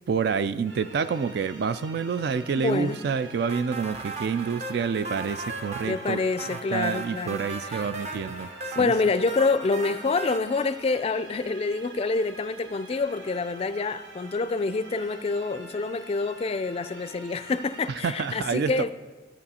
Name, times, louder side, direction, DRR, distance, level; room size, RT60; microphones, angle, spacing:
voice 1, 0.1-6.2 6.7-8.5 8.8-8.9 18.0-18.7, right 6 dB, 60° right, 0.3 m, -28 dB
sound 1, 0.7-18.4, right 2 dB, 75° right, 1.1 m, -46 dB
voice 2, 2.5-3.0 5.8-7.9 8.8-18.9, left 3 dB, 35° left, 0.4 m, -27 dB
sound 2, 3.5-10.4, right 2 dB, 40° right, 0.7 m, -37 dB
13.0 x 6.8 x 4.2 m
head